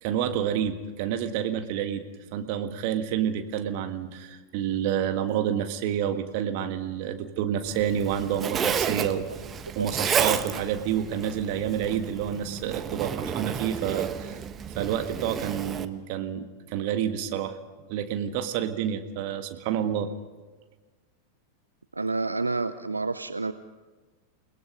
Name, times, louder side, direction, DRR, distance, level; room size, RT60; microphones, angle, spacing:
voice 1, 0.0-2.1 2.3-9.3 9.8-14.4 14.8-17.6 17.9-20.1, right 9 dB, 45° right, 7 dB, 1.7 m, -29 dB
Zipper (clothing), 7.6-15.8, right 7 dB, 25° right, 1.1 m, -31 dB
voice 2, 22.0-23.5, right 3 dB, 80° right, 13 dB, 0.6 m, -29 dB
29.5 x 18.5 x 5.4 m, 1.3 s
figure-of-eight pair, 90°, 0 cm